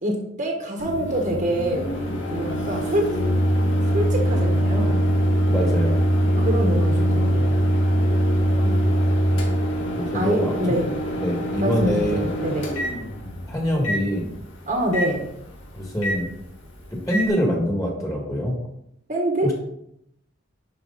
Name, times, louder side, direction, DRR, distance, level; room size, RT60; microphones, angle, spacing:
voice 1, 0.0-1.9 2.3-3.2 3.9-5.0 6.4-7.6 10.1-10.9 11.6-12.7 14.7-15.3 19.1-19.5, right 1 dB, 40° right, 0 dB, 1.3 m, -25 dB
Microwave oven, 0.8-17.3, equal, 80° left, 2.0 m, -23 dB
voice 2, 5.5-6.0 8.5-9.0 10.0-10.9 11.2-12.3 13.5-14.3 15.7-16.3 16.9-18.6 19.4-19.5, equal, 15° left, 0 dB, 1.9 m, -25 dB
11.0 x 4.7 x 4.0 m, 0.76 s
head